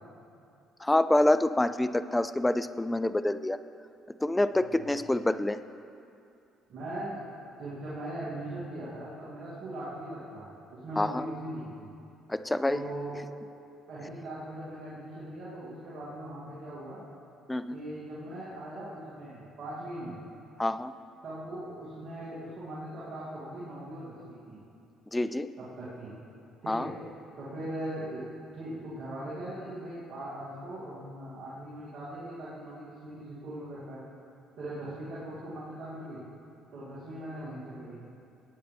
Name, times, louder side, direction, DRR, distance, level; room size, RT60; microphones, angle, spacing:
voice 1, 0.8-3.6 4.2-5.6 11.0-11.3 12.3-12.8 17.5-17.8 20.6-20.9 25.1-25.5 26.7-26.9, left 1 dB, 10° left, 13 dB, 0.4 m, -27 dB
voice 2, 4.5-4.9 6.7-11.9 12.7-13.2 13.9-17.0 17.7-20.2 21.2-24.6 25.6-26.2 26.6-26.9 27.4-34.0 34.6-36.2 36.7-38.0, right 1 dB, 60° right, -10 dB, 2.6 m, -40 dB
15.5 x 9.3 x 3.4 m, 2.6 s
supercardioid pair, 80°, 0 cm